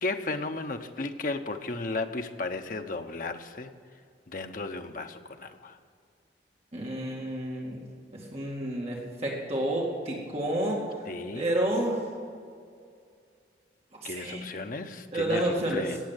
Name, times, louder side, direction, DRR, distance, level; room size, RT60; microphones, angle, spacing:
voice 1, 0.0-3.7 4.3-5.8 11.1-11.4 14.0-16.0, left 3 dB, 50° left, 6 dB, 0.8 m, -34 dB
voice 2, 6.7-7.8 8.1-10.9 11.3-12.0 14.0-14.5 15.1-15.8, right 1 dB, 35° right, -2 dB, 2.1 m, -30 dB
17.5 x 7.5 x 8.1 m, 2.3 s
head